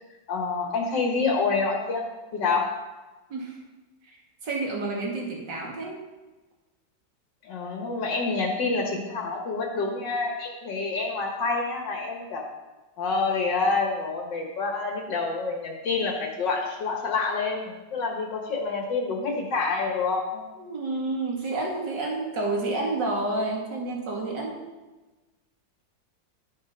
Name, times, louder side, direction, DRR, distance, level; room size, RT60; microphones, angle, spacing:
voice 1, 0.3-2.1 2.3-2.7 7.4-12.4 13.0-20.4, left 4 dB, 75° left, 0 dB, 2.2 m, -27 dB
voice 2, 4.4-6.0 20.6-24.6, right 2 dB, 70° right, -2 dB, 2.9 m, -29 dB
12.0 x 6.8 x 5.6 m, 1.2 s
omnidirectional pair, 2.0 m